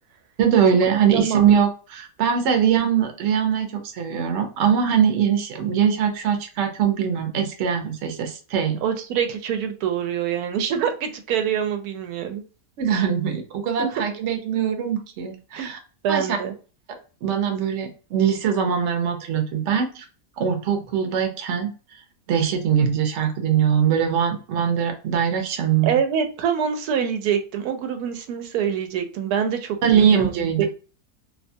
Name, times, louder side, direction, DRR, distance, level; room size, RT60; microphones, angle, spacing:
voice 1, 0.4-8.8 12.8-15.8 16.1-16.4 17.2-20.0 20.4-21.7 22.3-26.0 29.8-30.6, right 8 dB, 60° right, 5 dB, 0.8 m, -22 dB
voice 2, 1.0-1.4 8.8-12.4 13.8-13.9 15.6-15.7 16.0-16.5 25.8-30.6, right 8 dB, 90° right, 6 dB, 1.1 m, -25 dB
2.7 x 2.2 x 2.6 m, 0.36 s
omnidirectional pair, 1.6 m